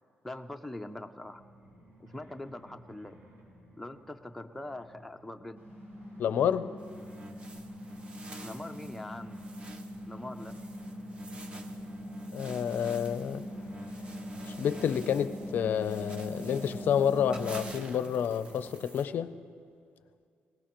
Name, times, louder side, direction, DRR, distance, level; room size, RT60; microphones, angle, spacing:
voice 1, 0.2-1.4 2.0-3.2 3.8-5.6 8.4-9.4 10.1-10.6, left 1 dB, 5° left, 0.4 m, -42 dB
sound 1, 1.2-18.9, right 1 dB, 75° right, 4.7 m, -56 dB
sound 2, 5.6-17.6, equal, 45° right, 4.5 m, -42 dB
voice 2, 6.2-6.8 12.3-13.4 14.5-19.4, left 8 dB, 60° left, 0.4 m, -29 dB
sound 3, 6.8-19.0, right 2 dB, 30° right, 0.7 m, -50 dB
21.5 x 18.0 x 3.0 m
wide cardioid pair, 180°, 4 cm